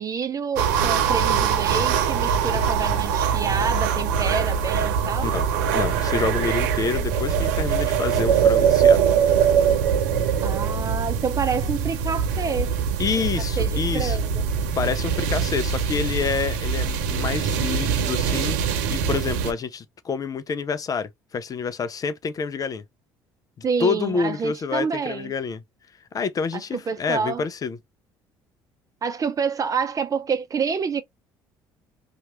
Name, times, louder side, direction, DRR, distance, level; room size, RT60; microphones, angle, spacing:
voice 1, 0.0-5.3 10.4-12.8 13.2-13.3 13.6-14.4 23.6-25.3 26.5-27.4 29.0-31.0, right 5 dB, 35° right, 0.7 m, -28 dB
sound 1, 0.6-19.5, right 7 dB, 85° right, 0.6 m, -22 dB
voice 2, 5.7-9.1 13.0-14.2 14.8-22.8 23.8-25.6 26.1-27.8, left 5 dB, 40° left, 0.5 m, -28 dB
2.9 x 2.4 x 2.9 m
hypercardioid pair, 65°, 10 cm